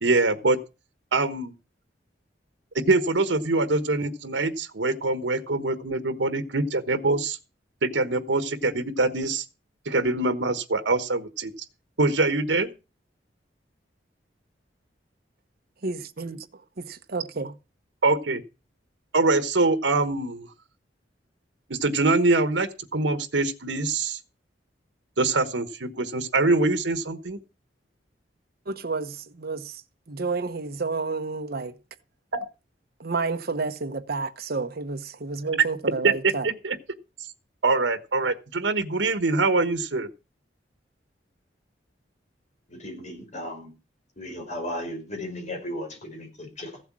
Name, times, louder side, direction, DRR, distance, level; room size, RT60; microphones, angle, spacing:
voice 1, 0.0-0.6 1.1-1.5 2.7-7.4 7.8-9.4 9.8-11.5 12.0-12.7 18.0-18.4 19.1-20.5 21.7-24.2 25.2-27.4 32.3-32.4 36.0-36.8 37.6-40.1, right 3 dB, 85° right, 1.2 m, -24 dB
voice 2, 15.8-16.4 17.1-17.5 28.7-29.8 30.1-31.7 33.0-36.5, right 4 dB, 60° right, 1.0 m, -30 dB
voice 3, 42.7-43.7 44.2-46.8, left 1 dB, 40° left, 5.4 m, -35 dB
15.0 x 8.0 x 6.1 m
head